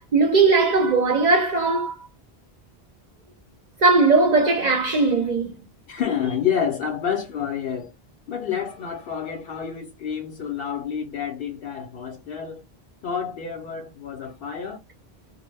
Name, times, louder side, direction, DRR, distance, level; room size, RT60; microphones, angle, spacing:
voice 1, 0.0-2.0 3.8-5.5, right 3 dB, 50° right, 0.6 m, -19 dB
voice 2, 5.9-7.9 8.3-12.6 13.0-14.8, left 8 dB, 70° left, 0.7 m, -28 dB
2.1 x 2.0 x 3.1 m
omnidirectional pair, 1.1 m